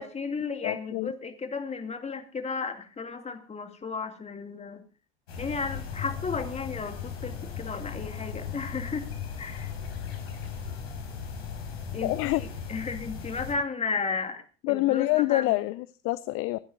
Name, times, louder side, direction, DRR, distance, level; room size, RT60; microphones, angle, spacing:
voice 1, 0.0-4.8 5.4-9.1 9.4-9.7 11.9-15.6, left 4 dB, 20° left, 6 dB, 2.5 m, -34 dB
voice 2, 0.6-1.1 12.0-12.4 14.6-16.6, left 19 dB, 45° left, 17 dB, 0.6 m, -26 dB
sound 1, 5.3-13.5, left 7 dB, 75° left, 4.8 m, -37 dB
26.0 x 11.5 x 2.6 m, 0.36 s
figure-of-eight pair, 75°, 32 cm